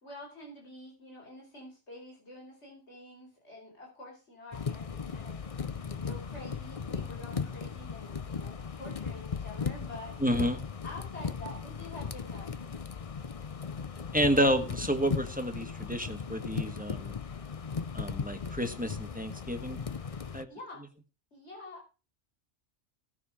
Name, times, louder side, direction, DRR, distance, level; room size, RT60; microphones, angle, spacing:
voice 1, 0.0-5.4 5.9-10.2 10.8-12.6 20.5-20.8 21.3-22.0, left 1 dB, 75° left, -2 dB, 5.3 m, -47 dB
sound 1, 4.5-20.4, left 6 dB, 35° left, 0.7 m, -37 dB
voice 2, 10.2-10.6 14.1-17.1 17.9-19.8 20.3-20.5, equal, 5° right, 7 dB, 1.5 m, -30 dB
18.5 x 6.5 x 5.0 m, 0.32 s
omnidirectional pair, 1.2 m